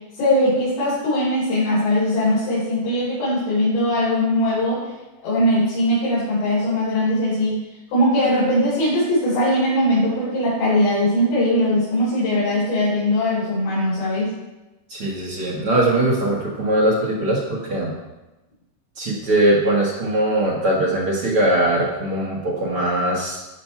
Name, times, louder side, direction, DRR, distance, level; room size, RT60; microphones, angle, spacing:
voice 1, 0.1-4.9 5.2-7.7 7.9-14.3, left 1 dB, 75° left, -11 dB, 6.5 m, -20 dB
voice 2, 14.9-17.9 19.0-23.4, right 1 dB, 80° right, -3 dB, 1.2 m, -21 dB
15.5 x 5.9 x 4.5 m, 1.1 s
omnidirectional pair, 5.2 m